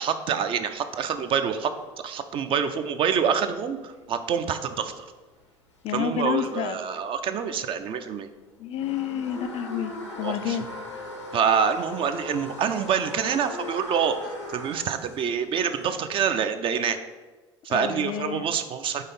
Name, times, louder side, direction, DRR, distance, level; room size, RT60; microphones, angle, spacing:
voice 1, 0.0-1.7 2.0-5.1 5.9-8.3 10.2-10.6 11.3-17.0 17.6-19.0, right 7 dB, 35° right, 9 dB, 0.5 m, -26 dB
sound 1, 0.7-7.8 8.2-16.1, left 2 dB, 85° left, 0.9 m, -40 dB
voice 2, 5.8-6.8 8.6-10.7 17.7-18.4, left 9 dB, 40° left, 10 dB, 0.4 m, -29 dB
5.6 x 3.7 x 5.2 m, 1.2 s
figure-of-eight pair, 65°, 15 cm